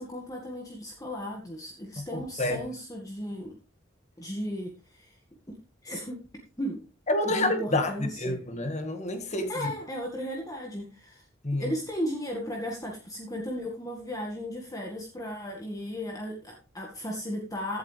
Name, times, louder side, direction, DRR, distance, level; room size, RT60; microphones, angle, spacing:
voice 1, 0.0-3.5 4.2-5.2 5.5-6.2 6.6-6.8 7.2-8.4 9.5-11.3 11.5-17.8, equal, 15° left, 1.9 m, -35 dB
voice 2, 2.1-2.6 7.1-7.9 8.2-9.5 11.4-11.7, left 1 dB, 35° left, 1.8 m, -28 dB
15.5 x 8.4 x 3.4 m
head